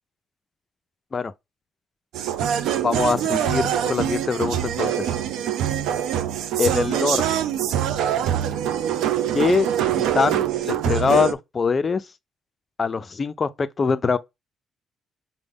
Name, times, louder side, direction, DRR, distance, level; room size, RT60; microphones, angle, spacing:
sound 1, 2.1-11.3, right 10 dB, 90° right, 0.4 m, -24 dB
voice 1, 2.8-5.2 6.6-7.3 9.3-9.7 10.0-12.1 12.8-14.2, left 5 dB, 35° left, 0.4 m, -23 dB
5.0 x 2.1 x 3.4 m
cardioid pair, 90°, 0 cm